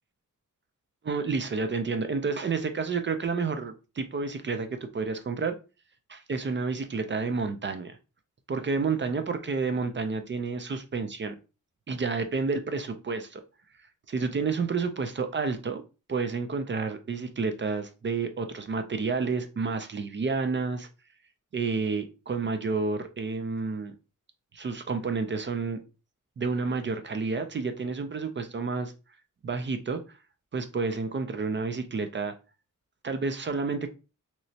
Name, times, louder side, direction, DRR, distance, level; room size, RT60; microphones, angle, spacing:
voice 1, 1.0-5.6 6.1-8.0 8.5-11.3 11.9-13.4 14.1-15.8 16.1-20.9 21.5-23.9 24.5-25.8 26.4-28.9 29.4-30.2 30.5-32.3 33.0-33.9, right 4 dB, 40° right, 8 dB, 0.4 m, -30 dB
3.1 x 3.0 x 2.7 m, 0.31 s
wide cardioid pair, 180°, 32 cm